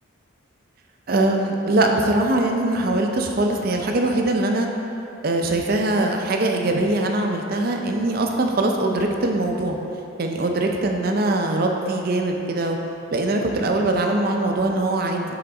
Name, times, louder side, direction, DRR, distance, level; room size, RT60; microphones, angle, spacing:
voice 1, 1.1-4.7 5.2-9.8 10.2-12.8 13.1-15.3, right 2 dB, 45° right, 2 dB, 0.5 m, -22 dB
6.8 x 3.8 x 3.8 m, 2.8 s
head